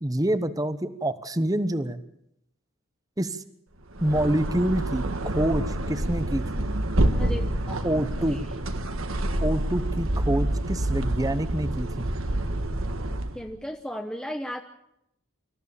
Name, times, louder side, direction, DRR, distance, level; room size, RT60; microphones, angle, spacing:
voice 1, 0.0-2.0 3.2-3.4 4.0-5.1 5.3-6.7 7.8-8.5 9.4-12.1, right 1 dB, 15° right, 12 dB, 1.0 m, -27 dB
sound 1, 3.9-13.4, right 1 dB, 80° right, 1.7 m, -27 dB
voice 2, 7.1-8.0 8.3-8.4 13.3-14.6, equal, 5° left, 4 dB, 1.0 m, -35 dB
26.0 x 15.0 x 7.1 m, 0.80 s
head